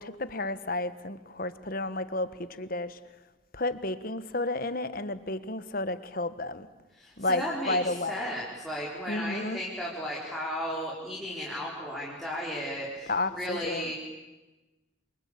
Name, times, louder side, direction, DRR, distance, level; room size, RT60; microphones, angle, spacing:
voice 1, 0.0-3.0 3.5-6.7 7.2-8.2 9.1-9.6 13.1-13.9, left 2 dB, 45° left, 13 dB, 1.4 m, -32 dB
voice 2, 6.9-13.9, equal, ahead, -5 dB, 4.6 m, -35 dB
29.0 x 23.5 x 8.7 m, 1.1 s
head